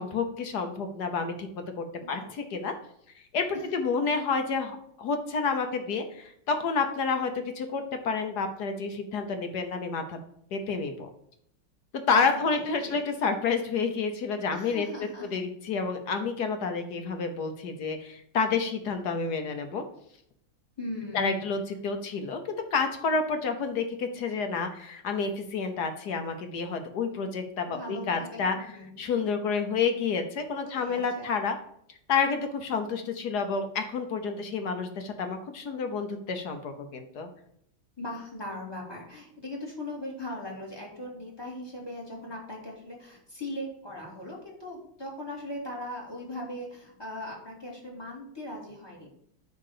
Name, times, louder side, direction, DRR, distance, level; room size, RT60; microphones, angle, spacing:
voice 1, 0.0-1.5 1.8-2.2 2.5-2.7 3.3-10.2 10.5-11.1 12.1-19.8 21.1-28.6 29.0-31.6 32.1-37.3, left 5 dB, 60° left, 6 dB, 1.3 m, -29 dB
voice 2, 2.0-2.3 3.5-3.6 12.1-13.0 14.5-15.3 20.8-21.6 27.6-29.0 30.6-31.3 38.0-49.1, left 1 dB, 10° left, -2 dB, 2.5 m, -39 dB
9.5 x 3.9 x 6.6 m, 0.70 s
omnidirectional pair, 2.3 m